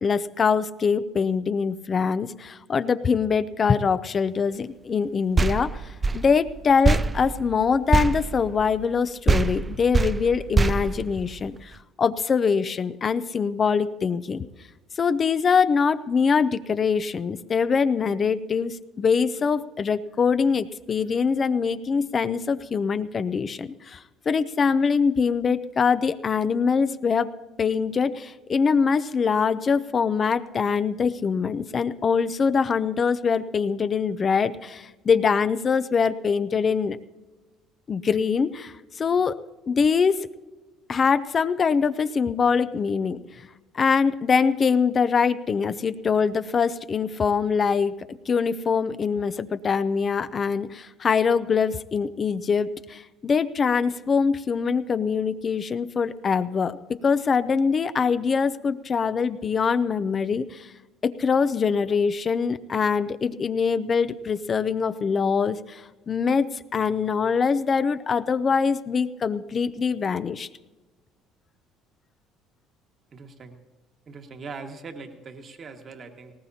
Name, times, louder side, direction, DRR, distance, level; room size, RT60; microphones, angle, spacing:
voice 1, 0.0-14.5 15.0-27.3 27.6-37.0 37.9-39.4 39.7-40.3 40.9-43.2 43.7-47.9 48.3-60.7 61.0-70.5, left 5 dB, 40° left, 12 dB, 0.6 m, -23 dB
sound 1, 5.4-9.0 9.3-11.7, right 4 dB, 30° right, 0.4 m, -24 dB
voice 2, 73.1-73.6 74.1-76.3, right 4 dB, 45° right, 4 dB, 1.7 m, -41 dB
19.0 x 18.5 x 2.8 m, 1.1 s
hypercardioid pair, 65°, 0 cm